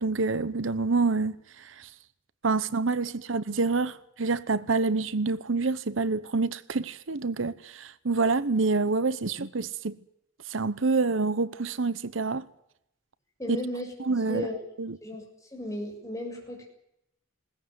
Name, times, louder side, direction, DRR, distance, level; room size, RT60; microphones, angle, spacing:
voice 1, 0.0-1.9 2.4-10.0 10.5-12.5 13.5-13.6 14.0-14.5 14.8-15.0, right 3 dB, 80° right, 0.9 m, -27 dB
voice 2, 13.4-13.9 14.3-14.6 15.0-15.2 15.5-16.6, left 1 dB, 15° left, 7.3 m, -34 dB
21.0 x 19.5 x 9.5 m
head